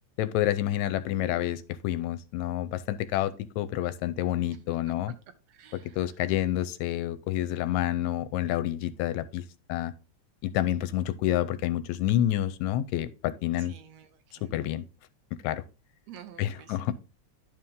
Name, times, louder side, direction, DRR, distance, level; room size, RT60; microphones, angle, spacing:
voice 1, 0.2-5.1 5.7-9.4 9.7-9.9 10.4-13.7 14.4-14.8 15.4-15.6 16.4-16.9, left 13 dB, 80° left, 1.8 m, -28 dB
voice 2, 5.5-6.1 13.6-14.6 16.1-16.9, right 9 dB, 70° right, 1.9 m, -51 dB
11.0 x 4.6 x 3.6 m
omnidirectional pair, 3.4 m